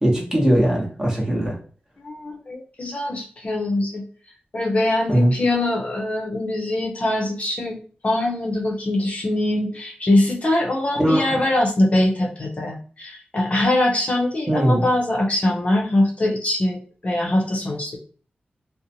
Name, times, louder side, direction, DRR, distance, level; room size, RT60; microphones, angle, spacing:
voice 1, 0.0-1.6 5.1-5.3 11.0-11.4 14.5-14.9, right 1 dB, 15° right, -2 dB, 0.8 m, -19 dB
voice 2, 2.0-4.1 4.5-7.8 8.0-18.0, left 1 dB, 40° left, -1 dB, 0.6 m, -22 dB
2.5 x 2.0 x 2.8 m, 0.41 s
wide cardioid pair, 135°, 4 cm